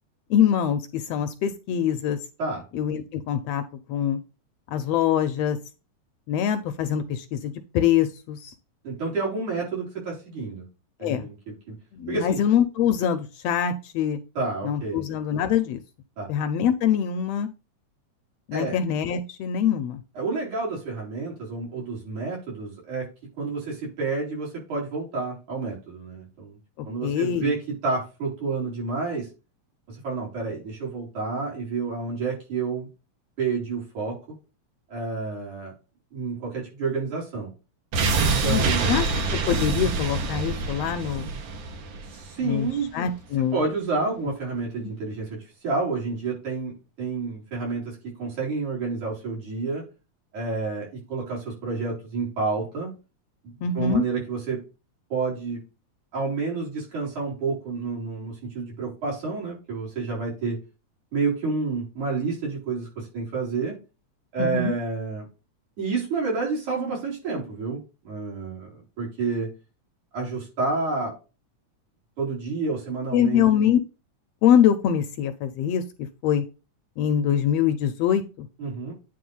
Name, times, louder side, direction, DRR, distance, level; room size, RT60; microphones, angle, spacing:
voice 1, 0.3-2.2 2.7-3.6 3.9-4.2 4.7-5.6 6.3-8.5 11.0-11.3 11.9-14.2 14.6-15.8 16.3-17.5 18.5-20.0 26.8-27.6 38.4-41.3 42.4-42.7 42.9-43.6 44.8-44.9 53.6-54.0 64.4-64.7 73.1-73.8 74.4-75.8 76.2-76.4 77.0-78.5, left 9 dB, 80° left, 9 dB, 1.5 m, -24 dB
voice 2, 8.8-10.7 11.0-11.8 12.1-12.4 14.4-15.0 16.2-16.3 18.5-18.8 20.2-23.1 23.4-26.6 26.9-29.3 29.9-32.9 33.4-34.2 34.9-35.7 36.1-37.5 38.2-38.9 42.1-42.9 43.5-45.4 45.6-49.8 50.3-52.9 53.4-54.6 55.1-55.6 56.1-60.6 61.1-63.8 64.3-65.3 65.8-68.7 69.0-69.5 70.1-71.1 72.2-73.5 78.6-78.9, right 4 dB, 80° right, -4 dB, 5.7 m, -29 dB
sound 1, 37.9-42.9 43.2-43.3, right 3 dB, 60° right, 1.3 m, -26 dB
9.5 x 3.3 x 5.4 m, 0.30 s
omnidirectional pair, 3.3 m